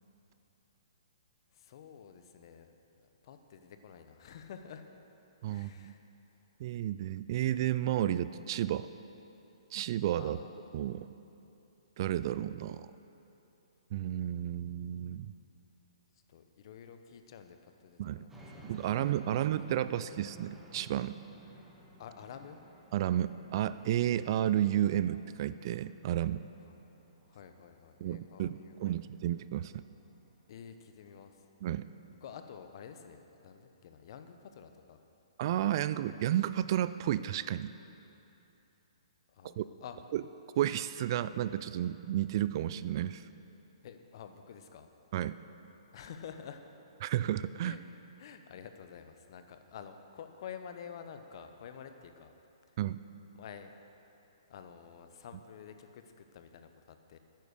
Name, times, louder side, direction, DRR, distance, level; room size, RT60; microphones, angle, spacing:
voice 1, 1.5-2.7 3.0-4.8 5.5-6.0 10.2-10.7 16.3-19.5 22.0-22.6 26.6-26.7 27.3-29.1 30.5-31.4 32.2-35.0 39.3-40.0 43.8-44.9 45.9-46.6 47.6-52.3 53.3-53.7 54.5-57.2, left 7 dB, 50° left, 8 dB, 0.9 m, -50 dB
voice 2, 5.4-5.9 6.6-8.9 9.7-10.4 10.7-11.1 12.0-12.9 13.9-15.3 18.0-18.2 18.7-21.2 22.9-26.5 28.0-29.8 31.6-31.9 35.4-37.7 39.4-39.7 40.1-40.2 40.6-43.2 45.1-45.4 47.0-47.8 52.8-53.0, right 12 dB, 45° right, 15 dB, 0.3 m, -32 dB
sound 1, 18.3-31.3, right 1 dB, 10° right, 1.5 m, -56 dB
10.0 x 9.3 x 6.6 m, 2.9 s
hypercardioid pair, 140°, 3 cm